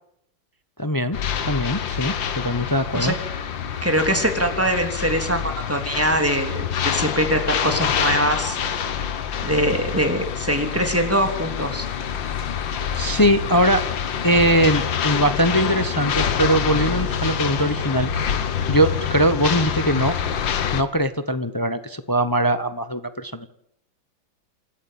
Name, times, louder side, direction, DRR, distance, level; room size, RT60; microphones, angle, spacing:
voice 1, 0.8-1.2 1.5-3.1 12.9-13.8 14.2-18.1 18.7-20.1 20.7-23.5, right 1 dB, 20° left, 11 dB, 0.6 m, -21 dB
sound 1, 1.1-20.8, left 8 dB, 75° left, 2.0 m, -26 dB
voice 2, 3.8-8.6 9.4-11.9, right 1 dB, 5° right, 5 dB, 3.1 m, -22 dB
28.5 x 13.0 x 8.8 m, 0.73 s
omnidirectional pair, 2.1 m